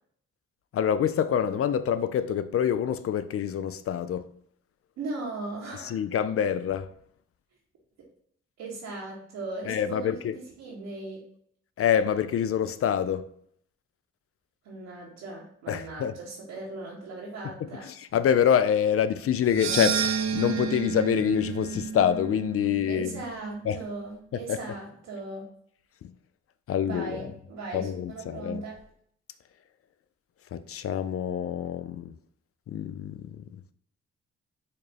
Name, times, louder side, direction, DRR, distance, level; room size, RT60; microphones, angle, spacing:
voice 1, 0.7-4.3 5.8-6.9 9.7-10.3 11.8-13.3 15.7-16.1 17.6-23.1 23.6-23.8 24.3-24.6 26.0-26.1 26.7-27.3 27.7-28.6 30.5-32.1 32.7-33.4, left 8 dB, 50° left, 0.4 m, -26 dB
voice 2, 5.0-6.0 8.6-10.2 10.6-11.2 14.6-17.9 22.9-25.5 26.8-28.8, right 3 dB, 90° right, 1.1 m, -38 dB
sound 1, 19.4-23.8, right 6 dB, 70° right, 0.5 m, -31 dB
4.3 x 2.4 x 3.3 m
supercardioid pair, 55°, 29 cm